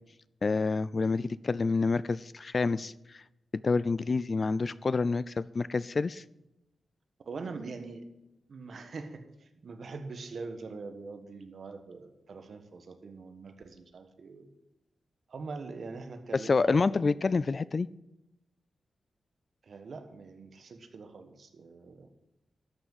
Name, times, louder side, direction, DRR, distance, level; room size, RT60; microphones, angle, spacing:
voice 1, 0.4-3.2 3.6-6.2 16.3-17.9, left 4 dB, 40° left, 19 dB, 0.3 m, -28 dB
voice 2, 7.2-8.0 8.5-14.5 15.3-17.3 19.6-22.1, right 4 dB, 60° right, 7 dB, 1.3 m, -43 dB
13.0 x 6.1 x 7.1 m, 0.91 s
wide cardioid pair, 105°, 0 cm